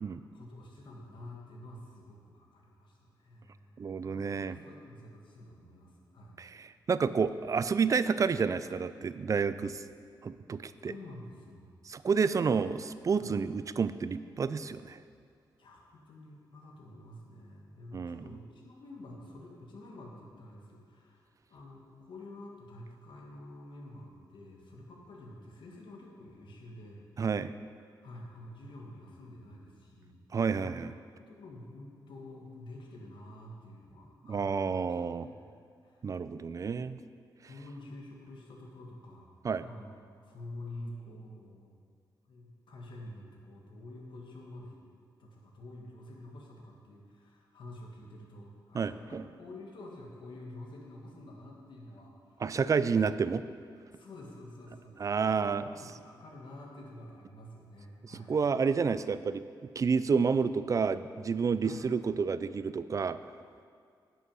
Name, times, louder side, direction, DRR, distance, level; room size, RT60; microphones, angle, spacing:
voice 1, 0.3-6.4 10.8-11.7 13.2-13.3 15.6-27.1 28.0-30.2 30.6-30.8 31.2-35.5 35.8-36.0 37.4-39.3 39.6-41.8 42.3-44.8 45.2-52.4 53.9-55.0 55.6-58.3 61.6-61.8, left 1 dB, 75° left, -1 dB, 1.6 m, -48 dB
voice 2, 3.8-4.5 6.4-9.8 10.2-10.9 11.9-15.0 17.9-18.2 27.2-27.5 30.3-30.9 34.3-35.3 36.0-37.0 39.4-39.6 48.7-49.2 52.4-53.4 55.0-55.7 58.0-59.4 59.8-63.2, right 5 dB, 40° right, 14 dB, 0.4 m, -30 dB
9.4 x 6.2 x 5.5 m, 2.2 s
cardioid pair, 80°, 8 cm